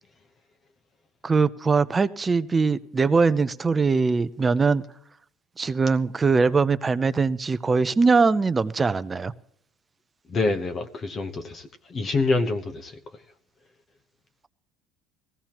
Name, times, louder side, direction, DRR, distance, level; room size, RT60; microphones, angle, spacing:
voice 1, 1.2-4.8 5.6-9.3, right 4 dB, 20° right, 0.5 m, -22 dB
voice 2, 10.3-13.0, left 3 dB, 30° left, 1.0 m, -26 dB
18.5 x 16.0 x 3.0 m
cardioid pair, 130°, 0 cm